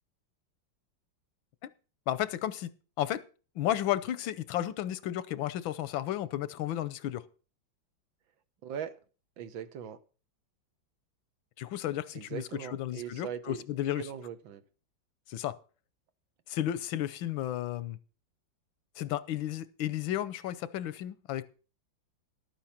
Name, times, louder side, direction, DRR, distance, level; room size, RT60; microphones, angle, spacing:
voice 1, 2.1-3.2 3.6-7.2 11.6-12.4 12.7-14.1 15.3-15.5 16.5-18.0 19.0-21.4, left 12 dB, 90° left, 1.5 m, -33 dB
voice 2, 8.6-9.0 9.4-10.0 12.1-13.6 14.0-14.6, right 8 dB, 85° right, 1.8 m, -40 dB
12.0 x 8.9 x 5.8 m
omnidirectional pair, 2.1 m